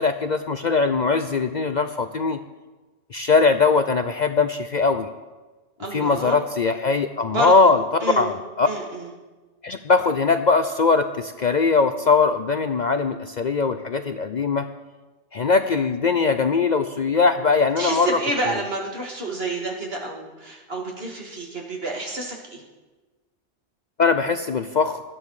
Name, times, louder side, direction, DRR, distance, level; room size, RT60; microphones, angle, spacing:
voice 1, 0.0-2.4 3.1-5.1 5.9-7.8 8.2-8.7 9.6-14.7 15.3-18.2 18.5-18.6 24.0-25.0, left 4 dB, 50° left, 9 dB, 0.6 m, -21 dB
voice 2, 5.8-6.4 7.3-7.7 8.0-8.3 8.6-9.1 17.8-22.6, right 2 dB, 60° right, 0 dB, 2.6 m, -29 dB
18.5 x 13.0 x 4.9 m, 1.2 s
omnidirectional pair, 1.2 m